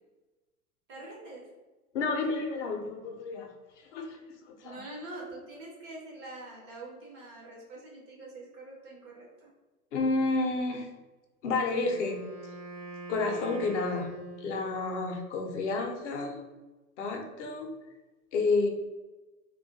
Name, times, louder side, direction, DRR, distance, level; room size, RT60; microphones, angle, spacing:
voice 1, 0.9-1.5 4.6-9.5, right 2 dB, 20° right, -3 dB, 0.3 m, -45 dB
voice 2, 1.9-4.2 4.5-4.8 9.9-10.9 11.4-12.2 13.1-14.1 14.4-16.4 17.0-17.7 18.3-18.7, left 3 dB, 55° left, 3 dB, 0.6 m, -30 dB
Wind instrument woodwind instrument, 11.7-15.0, right 2 dB, 80° right, 0.9 m, -43 dB
2.2 x 2.2 x 2.5 m, 1.2 s
figure-of-eight pair, 95°, 44 cm